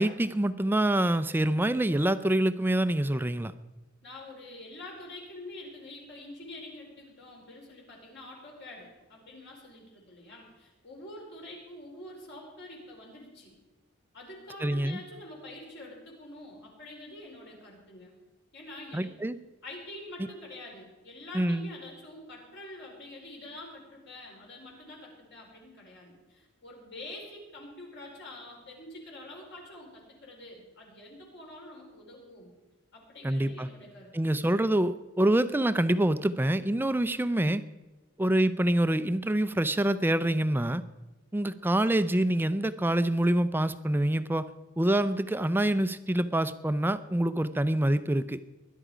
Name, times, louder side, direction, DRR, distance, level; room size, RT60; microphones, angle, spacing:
voice 1, 0.0-3.5 14.6-15.0 18.9-19.4 21.3-21.7 33.2-33.7 34.1-37.6 38.2-40.8 41.3-44.5 44.8-48.4, right 1 dB, 10° right, 13 dB, 0.4 m, -26 dB
voice 2, 4.0-13.5 14.1-18.1 18.5-19.1 19.6-32.5 32.9-34.4, left 1 dB, 55° left, -1 dB, 4.9 m, -46 dB
20.5 x 11.0 x 5.0 m, 1.1 s
head